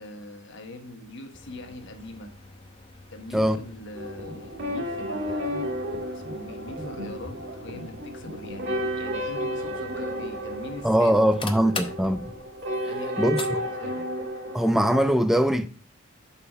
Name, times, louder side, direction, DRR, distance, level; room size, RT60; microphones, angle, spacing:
voice 1, 0.0-2.3 3.1-5.8 6.1-11.1 11.8-12.0 12.8-14.1, left 1 dB, 60° left, 1.2 m, -42 dB
sound 1, 1.3-13.5, left 4 dB, 25° left, 0.7 m, -44 dB
sound 2, 3.9-15.1, equal, 55° right, 2.3 m, -32 dB
voice 2, 10.8-12.2 13.2-13.4 14.5-15.7, equal, ahead, 0.3 m, -21 dB
6.4 x 5.6 x 4.5 m
head